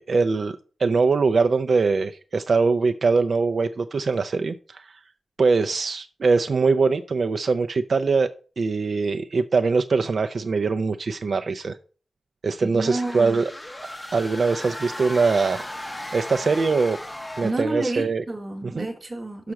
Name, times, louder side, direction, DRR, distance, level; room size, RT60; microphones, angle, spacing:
voice 1, 0.0-4.9 5.4-8.3 8.6-11.7 12.4-13.4 14.1-15.6 16.1-17.0 17.4-18.2 18.8-18.9, right 4 dB, 55° right, 0.5 m, -22 dB
voice 2, 12.6-13.4 17.4-19.5, right 2 dB, 25° right, 1.2 m, -30 dB
sound 1, 12.8-17.7, left 1 dB, 10° left, 0.7 m, -36 dB
6.4 x 5.9 x 5.8 m
wide cardioid pair, 150°, 0 cm